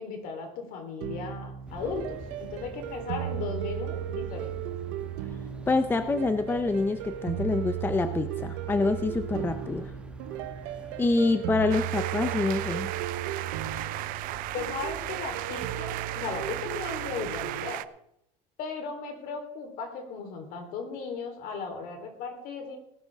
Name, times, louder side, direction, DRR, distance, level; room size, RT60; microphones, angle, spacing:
voice 1, 0.0-4.5 14.5-17.8 18.6-22.8, left 5 dB, 60° left, 4 dB, 3.7 m, -36 dB
sound 1, 1.0-17.7, right 11 dB, 85° right, 1.2 m, -36 dB
sound 2, 1.7-17.5, right 1 dB, 5° right, 1.3 m, -48 dB
voice 2, 5.7-9.9 11.0-12.9, left 3 dB, 15° left, 10 dB, 0.6 m, -26 dB
sound 3, 11.7-17.9, right 17 dB, 60° right, 0.6 m, -35 dB
18.0 x 11.5 x 3.6 m, 0.76 s
cardioid pair, 135°, 16 cm